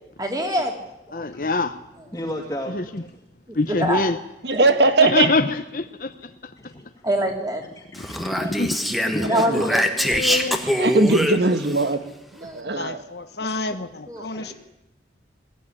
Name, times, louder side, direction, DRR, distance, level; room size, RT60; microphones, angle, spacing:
voice 1, 0.2-0.8 1.1-1.2 3.5-4.0 4.5-4.6 7.0-7.6 8.4-8.5 9.2-9.8 10.3-10.4 12.4-12.6 14.1-14.5, equal, 20° right, 3 dB, 3.3 m, -25 dB
voice 2, 1.1-1.8 2.7-3.0 3.5-4.2 4.8-6.7 8.3-8.9, left 3 dB, 50° left, 9 dB, 0.9 m, -25 dB
voice 3, 2.1-3.1 6.6-7.0 7.8-8.5 9.1-9.8 14.2-14.5, left 1 dB, 15° left, -3 dB, 2.3 m, -33 dB
voice 4, 4.4-5.3 9.5-9.6 10.8-12.0 12.5-13.0, right 3 dB, 70° right, 9 dB, 1.8 m, -19 dB
Speech, 7.9-11.8, equal, ahead, 1.3 m, -24 dB
voice 5, 9.9-10.6 12.7-14.5, left 2 dB, 65° left, 8 dB, 1.3 m, -30 dB
21.5 x 15.0 x 9.9 m, 0.91 s
head